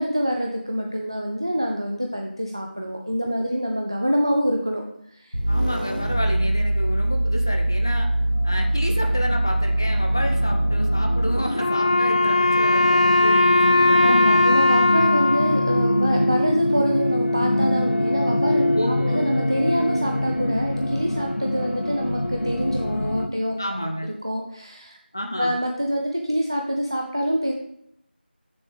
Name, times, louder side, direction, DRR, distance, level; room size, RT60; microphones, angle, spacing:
voice 1, 0.0-4.8 5.1-5.4 14.0-23.9 24.2-25.0 25.3-27.5, equal, 25° right, 1 dB, 0.4 m, -26 dB
sound 1, 5.3-11.5, right 1 dB, 55° right, 1.9 m, -22 dB
voice 2, 5.5-8.1 8.4-14.6 18.7-19.2 23.6-24.1 25.1-25.6, equal, 20° left, 3 dB, 0.5 m, -30 dB
sound 2, 8.1-23.3, left 1 dB, 90° left, 0.6 m, -25 dB
Wind instrument woodwind instrument, 11.6-16.7, left 2 dB, 40° left, 0.9 m, -19 dB
6.7 x 6.7 x 3.4 m, 0.74 s
figure-of-eight pair, 175°, 6 cm